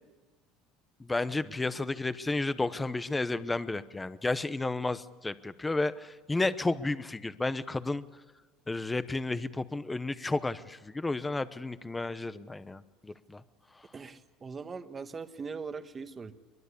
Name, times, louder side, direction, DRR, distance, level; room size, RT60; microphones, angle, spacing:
voice 1, 1.0-8.0 8.7-13.4, left 2 dB, 10° left, 13 dB, 0.8 m, -32 dB
voice 2, 13.9-16.3, right 5 dB, 20° right, 9 dB, 1.4 m, -41 dB
23.0 x 23.0 x 8.4 m, 1.2 s
cardioid pair, 150°, 0 cm